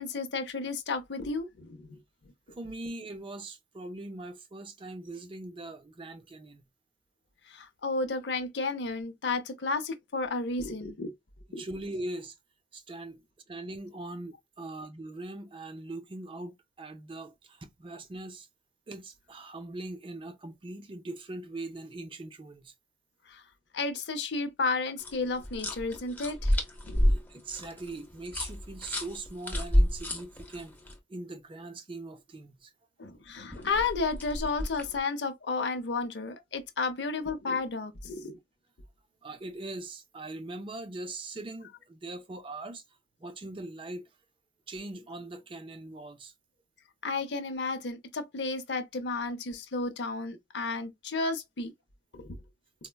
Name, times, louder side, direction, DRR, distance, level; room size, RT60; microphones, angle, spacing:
voice 1, 0.0-2.0 7.5-11.1 11.5-11.6 23.3-23.4 23.7-26.6 26.9-27.2 33.0-38.4 47.0-51.7 52.1-52.4, left 3 dB, 75° left, 0.6 m, -32 dB
voice 2, 2.5-6.7 11.5-12.3 12.7-18.5 18.9-22.7 27.0-30.8 31.1-32.7 39.2-42.8 43.2-44.1 44.7-46.3, right 2 dB, 30° right, 0.4 m, -41 dB
sound 1, 25.0-30.9 33.5-35.0, equal, 10° left, 0.6 m, -30 dB
4.2 x 2.1 x 2.2 m
head